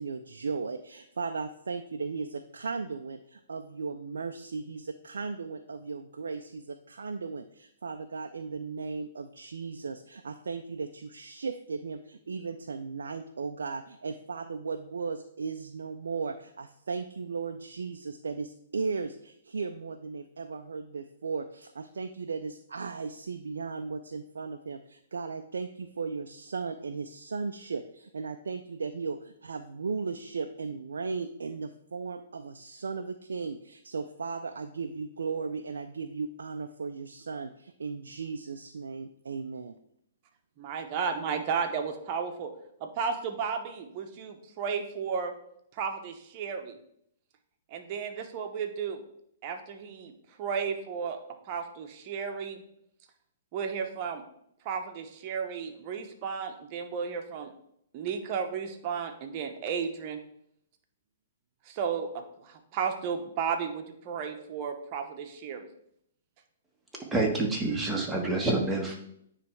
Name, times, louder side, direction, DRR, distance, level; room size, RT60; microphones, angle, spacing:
voice 1, 0.0-39.8, right 4 dB, 80° right, 6 dB, 0.4 m, -36 dB
voice 2, 40.6-42.5 42.8-45.3 45.7-46.8 47.7-49.0 49.4-50.1 50.4-51.2 51.5-52.6 53.5-54.2 54.6-57.5 57.9-60.2 61.7-65.7, right 6 dB, 40° right, 5 dB, 1.0 m, -33 dB
voice 3, 67.1-68.9, right 2 dB, 5° right, -1 dB, 1.6 m, -27 dB
9.4 x 3.3 x 4.5 m, 0.73 s
hypercardioid pair, 125°, 0 cm